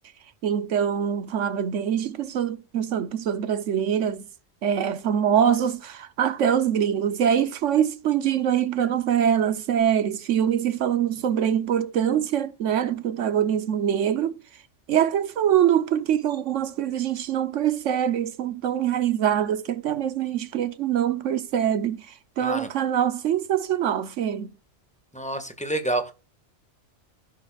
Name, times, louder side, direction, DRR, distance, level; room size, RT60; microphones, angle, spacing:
voice 1, 0.4-4.3 4.6-14.4 14.9-24.5, right 9 dB, 90° right, 1.2 m, -24 dB
voice 2, 22.4-22.7 25.1-26.1, right 2 dB, 5° left, 1.7 m, -28 dB
15.0 x 11.0 x 2.4 m
omnidirectional pair, 1.2 m